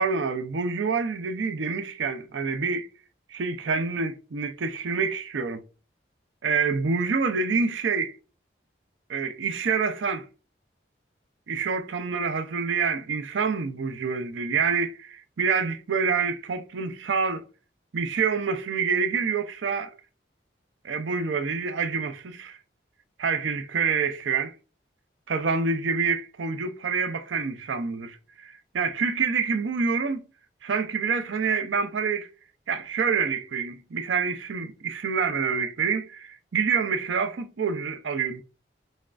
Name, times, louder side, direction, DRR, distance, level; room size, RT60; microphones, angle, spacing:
voice 1, 0.0-2.9 3.3-5.6 6.4-8.1 9.1-10.2 11.5-17.4 17.9-19.9 20.8-22.6 23.2-24.5 25.3-30.2 30.6-32.3 32.7-38.4, right 5 dB, 80° right, 0.5 m, -27 dB
6.2 x 2.3 x 2.4 m
head